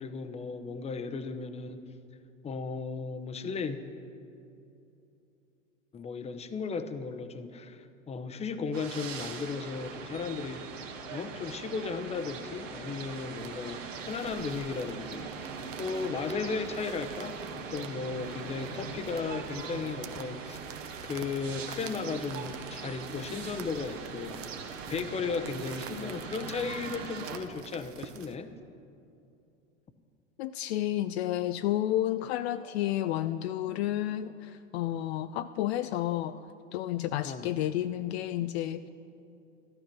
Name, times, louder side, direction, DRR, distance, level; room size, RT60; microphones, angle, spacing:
voice 1, 0.0-1.8 2.4-3.8 5.9-10.6 11.1-15.5 15.8-24.4 24.9-28.5 37.2-37.5, left 4 dB, 15° left, 9 dB, 0.8 m, -35 dB
sound 1, 8.7-27.4, right 5 dB, 70° right, 1.8 m, -41 dB
sound 2, 13.4-28.4, right 9 dB, 35° right, 0.9 m, -49 dB
voice 2, 30.4-36.5 36.7-38.9, left 13 dB, 55° left, 11 dB, 0.5 m, -31 dB
13.5 x 12.0 x 6.0 m, 2.7 s
hypercardioid pair, 95°, 39 cm